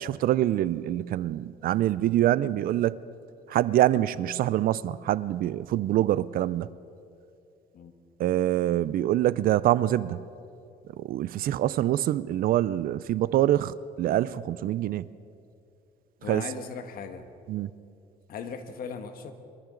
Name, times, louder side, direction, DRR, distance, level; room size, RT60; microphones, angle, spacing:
voice 1, 0.0-3.0 3.5-6.7 8.2-10.2 11.0-15.0 16.3-16.4 17.5-17.7, right 13 dB, 60° right, 18 dB, 0.4 m, -25 dB
voice 2, 16.2-17.3 18.3-19.3, left 6 dB, 60° left, 7 dB, 1.4 m, -38 dB
23.5 x 13.5 x 3.9 m, 2.5 s
cardioid pair, 110°, 17 cm